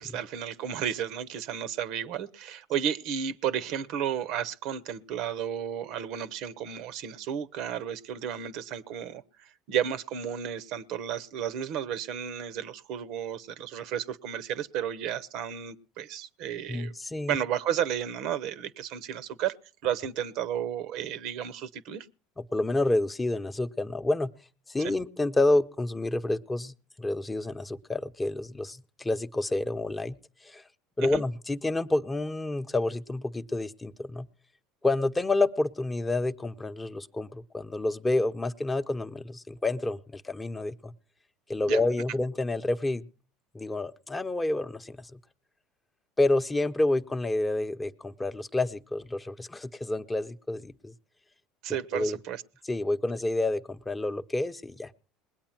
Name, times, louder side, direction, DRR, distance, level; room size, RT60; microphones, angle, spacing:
voice 1, 0.0-16.9 17.3-19.6 19.8-22.1 24.8-24.9 31.0-31.2 41.7-41.8 51.6-52.4, right 9 dB, 65° right, 0.8 m, -33 dB
voice 2, 16.7-17.4 22.4-24.3 24.7-30.2 30.4-30.6 31.0-34.3 34.8-40.9 41.5-43.1 43.5-45.2 46.2-50.9 51.7-52.2 52.6-54.9, left 2 dB, 15° left, 0.8 m, -29 dB
20.5 x 8.6 x 5.9 m
supercardioid pair, 95°, 0 cm